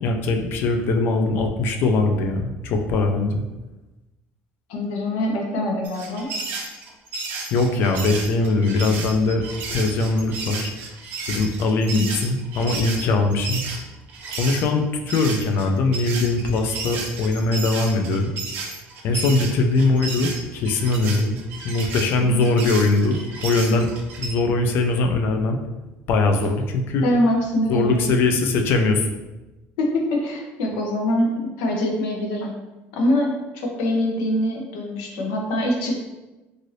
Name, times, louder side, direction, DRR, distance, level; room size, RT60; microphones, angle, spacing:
voice 1, 0.0-3.4 7.5-10.7 11.3-13.6 14.4-18.3 19.0-23.9 24.2-25.6 26.1-27.0 27.7-29.1, left 3 dB, 45° left, 4 dB, 0.3 m, -21 dB
voice 2, 4.7-6.3 12.0-12.1 22.3-22.5 27.0-28.0 29.8-31.3 31.6-32.5 32.9-36.0, left 1 dB, 80° left, 1 dB, 0.7 m, -23 dB
sound 1, 5.8-14.6 15.1-24.3, right 4 dB, 40° right, 0.5 m, -33 dB
2.6 x 2.5 x 3.1 m, 1.1 s
cardioid pair, 175°, 5 cm